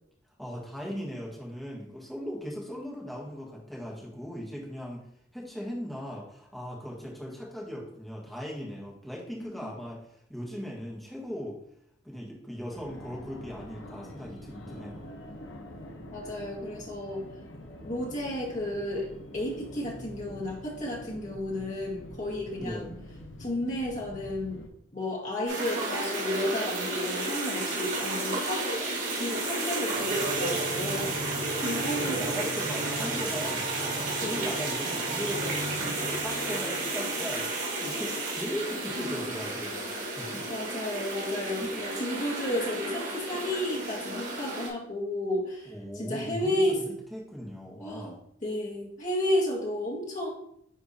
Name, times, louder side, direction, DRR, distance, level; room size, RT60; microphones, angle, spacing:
voice 1, 0.4-5.1 5.3-10.0 10.3-11.6 12.0-15.1 22.6-22.9 32.0-39.9 40.2-40.5 41.6-41.8 45.6-48.2, equal, ahead, -4 dB, 1.4 m, -38 dB
Fixed-wing aircraft airplane, 12.7-24.7, left 1 dB, 75° left, 0.9 m, -45 dB
voice 2, 16.1-17.2 17.8-22.9 23.4-24.6 24.9-28.6 29.1-31.2 31.6-32.3 34.2-34.5 39.0-39.3 40.5-46.8 47.8-50.3, left 1 dB, 40° left, -4 dB, 1.8 m, -32 dB
sound 1, 25.5-44.7, right 2 dB, 85° right, 2.3 m, -32 dB
sound 2, 29.9-36.9, right 3 dB, 25° right, 0.4 m, -38 dB
10.0 x 3.5 x 2.7 m, 0.71 s
head